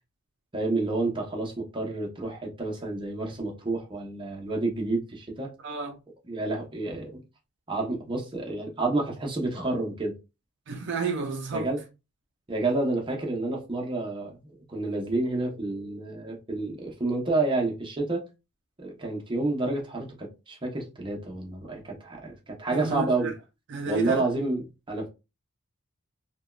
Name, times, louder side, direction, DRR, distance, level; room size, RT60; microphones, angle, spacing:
voice 1, 0.5-5.5 6.3-7.2 7.7-10.2 11.5-11.8 12.5-18.2 18.8-23.3 23.9-25.1, right 2 dB, 25° right, 0.8 m, -29 dB
voice 2, 5.6-6.0 10.7-11.7 22.7-23.3 23.7-24.2, right 4 dB, 55° right, 0.4 m, -31 dB
3.3 x 2.2 x 2.3 m
head